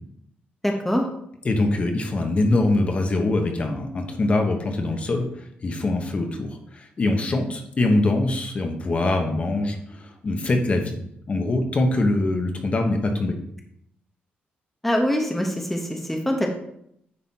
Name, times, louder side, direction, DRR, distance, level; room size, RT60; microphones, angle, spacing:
voice 1, 0.6-1.1 14.8-16.5, equal, 5° left, 2 dB, 0.9 m, -24 dB
voice 2, 1.4-10.9 11.3-13.3, left 2 dB, 35° left, 4 dB, 1.1 m, -23 dB
9.7 x 4.1 x 4.2 m, 0.73 s
cardioid pair, 120°, 4 cm